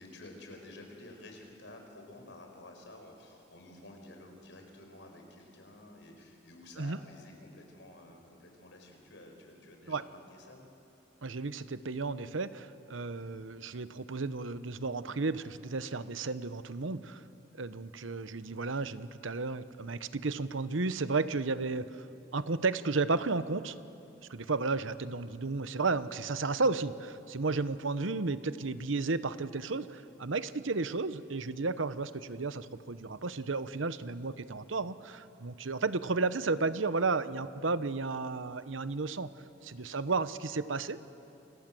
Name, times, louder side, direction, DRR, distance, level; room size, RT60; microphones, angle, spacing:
voice 1, 0.0-10.7 39.7-40.0, left 1 dB, 70° left, 3 dB, 5.3 m, -51 dB
voice 2, 11.2-17.2 17.6-22.1 22.3-23.7 24.3-39.3 39.6-41.0, right 3 dB, 90° right, 13 dB, 0.9 m, -33 dB
29.0 x 26.0 x 7.8 m, 2.8 s
head